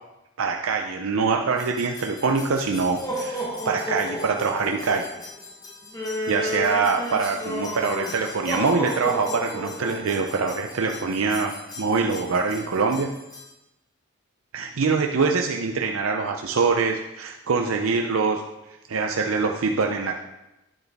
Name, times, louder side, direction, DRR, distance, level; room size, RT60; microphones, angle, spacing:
voice 1, 0.4-5.0 6.3-13.1 14.5-18.4 18.9-20.2, right 4 dB, 70° right, 3 dB, 0.5 m, -24 dB
sound 1, 1.6-13.5, equal, 15° left, 1.0 m, -33 dB
9.6 x 7.8 x 3.5 m, 0.95 s
head